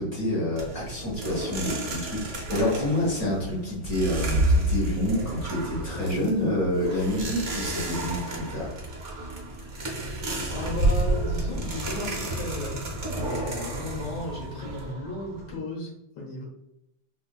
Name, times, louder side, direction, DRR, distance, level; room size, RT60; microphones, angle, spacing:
voice 1, 0.0-8.7, left 1 dB, 45° left, -4 dB, 1.3 m, -28 dB
sound 1, 0.6-15.6, right 1 dB, 65° right, 0.7 m, -30 dB
voice 2, 9.7-10.2 10.5-12.9 13.1-16.5, left 2 dB, 65° left, -3 dB, 1.8 m, -35 dB
3.8 x 2.4 x 2.2 m, 0.83 s
omnidirectional pair, 2.4 m